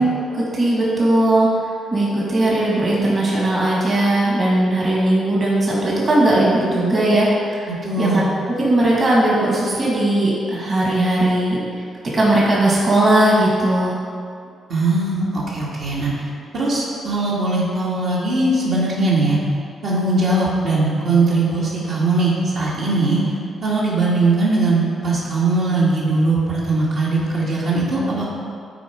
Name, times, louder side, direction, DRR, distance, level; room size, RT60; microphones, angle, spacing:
voice 1, 0.0-1.5 1.9-7.7 8.0-8.2 8.6-11.6 12.1-14.0, right 1 dB, 40° right, -5 dB, 2.0 m, -18 dB
voice 2, 7.7-8.3 14.7-16.1 16.5-19.4 19.8-23.2 23.6-28.2, right 2 dB, 65° right, -7 dB, 2.0 m, -20 dB
9.1 x 4.4 x 4.6 m, 2.3 s
cardioid pair, 95°, 0 cm